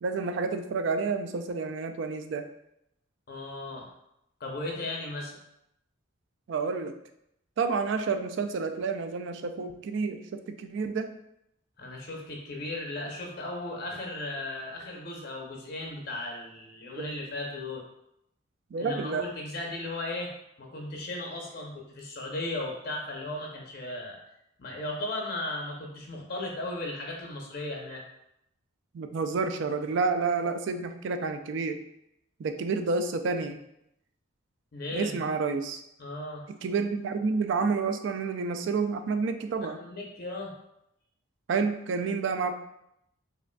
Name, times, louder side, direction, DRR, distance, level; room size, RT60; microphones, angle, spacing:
voice 1, 0.0-2.5 6.5-6.9 7.6-11.1 17.0-17.1 18.7-19.3 28.9-31.8 32.4-33.6 34.9-35.8 36.6-39.8 41.5-42.5, right 4 dB, 60° right, 7 dB, 0.3 m, -29 dB
voice 2, 3.3-3.9 4.4-5.4 11.8-17.8 18.8-20.3 20.6-24.2 24.6-28.0 34.7-35.2 36.0-36.4 39.8-40.6, left 2 dB, 50° left, 0 dB, 0.6 m, -36 dB
4.9 x 2.4 x 2.2 m, 0.79 s
head